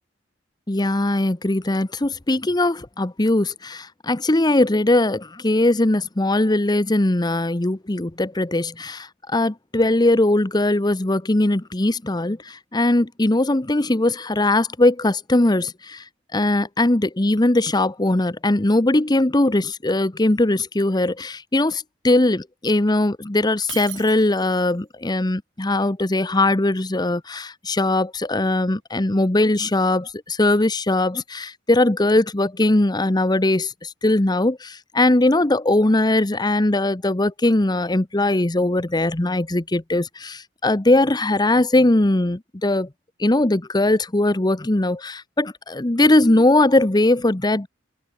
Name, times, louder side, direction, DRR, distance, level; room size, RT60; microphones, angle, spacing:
voice 1, 0.7-16.0 16.3-42.9 43.2-47.7, left 2 dB, 20° left, 0.9 m, -20 dB
Shatter, 23.7-24.7, right 14 dB, 75° right, 2.5 m, -38 dB
head